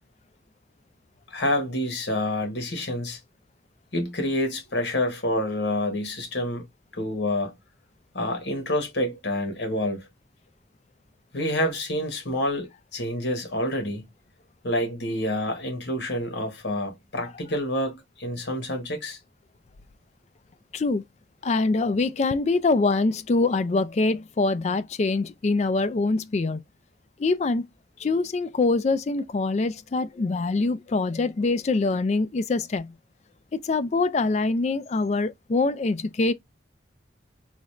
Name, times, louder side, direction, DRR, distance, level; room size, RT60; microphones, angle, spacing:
voice 1, 1.3-3.2 3.9-6.7 6.9-7.5 8.1-10.1 11.3-14.0 14.6-19.2, left 1 dB, 65° left, 1.3 m, -28 dB
voice 2, 20.7-21.0 21.4-26.6 27.2-27.7 28.0-32.9 33.5-36.3, left 3 dB, 35° left, 0.3 m, -24 dB
3.9 x 2.4 x 3.1 m
head